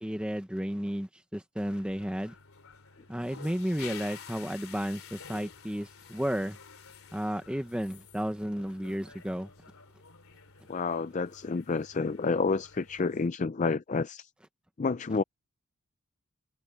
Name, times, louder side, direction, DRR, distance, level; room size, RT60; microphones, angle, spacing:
voice 1, 0.0-2.3 3.1-6.6 7.1-9.5, equal, 5° right, 0.8 m, -33 dB
sound 1, 1.6-13.3, left 6 dB, 85° left, 2.9 m, -50 dB
voice 2, 10.7-14.3 14.8-15.2, left 4 dB, 35° left, 0.4 m, -29 dB
head